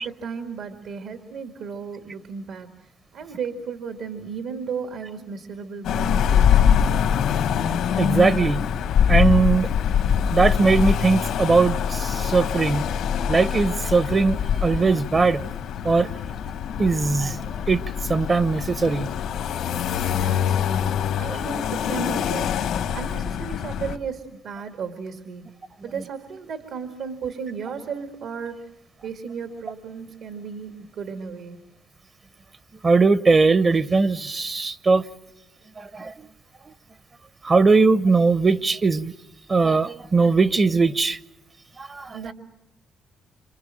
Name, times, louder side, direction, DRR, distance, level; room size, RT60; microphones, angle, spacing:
voice 1, 0.0-6.8 20.1-22.6 22.9-25.5 25.8-28.7 29.0-31.6 42.1-42.3, right 6 dB, 75° right, 2.0 m, -34 dB
sound 1, 5.8-24.0, left 8 dB, 85° left, 2.2 m, -24 dB
voice 2, 8.0-8.7 9.1-9.7 10.3-12.8 13.3-15.5 15.8-16.1 16.8-17.8 18.1-19.1 21.3-21.5 32.8-35.1 35.8-36.3 36.7-36.8 37.4-39.1 39.5-41.2 41.8-42.2, right 4 dB, 35° right, 0.9 m, -20 dB
27.5 x 25.5 x 7.6 m
cardioid pair, 90°, 0 cm